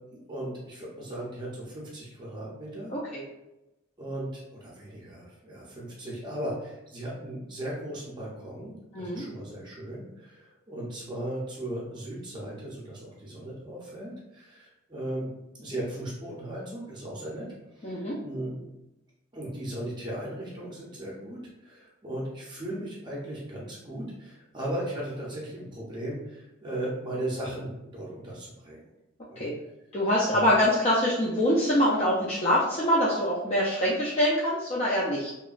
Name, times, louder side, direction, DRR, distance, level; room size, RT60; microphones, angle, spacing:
voice 1, 0.1-2.9 4.0-15.3 15.6-17.5 17.7-18.6 19.3-28.8 29.3-29.5 30.3-30.5, right 1 dB, 20° right, -5 dB, 0.6 m, -37 dB
voice 2, 2.9-3.2 8.9-9.2 17.8-18.2 29.4-29.5 29.9-35.3, equal, 35° left, -6 dB, 0.4 m, -24 dB
2.9 x 2.1 x 2.4 m, 0.94 s
head